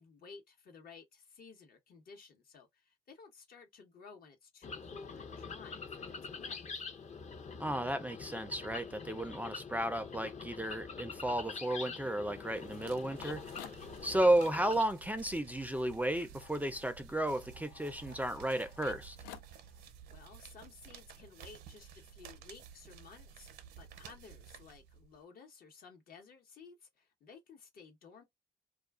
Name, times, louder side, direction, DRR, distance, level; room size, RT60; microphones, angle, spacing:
voice 1, 0.0-6.6 20.1-23.5 23.8-28.2, left 5 dB, 60° left, 1.0 m, -55 dB
sound 1, 4.6-14.8, left 5 dB, 40° left, 0.7 m, -45 dB
voice 2, 7.6-13.4 14.0-19.2, right 1 dB, 10° right, 0.4 m, -33 dB
sound 2, 11.1-19.9, left 9 dB, 85° left, 0.4 m, -55 dB
sound 3, 12.4-25.2, right 8 dB, 70° right, 0.6 m, -54 dB
2.3 x 2.3 x 2.3 m
supercardioid pair, 55°, 17 cm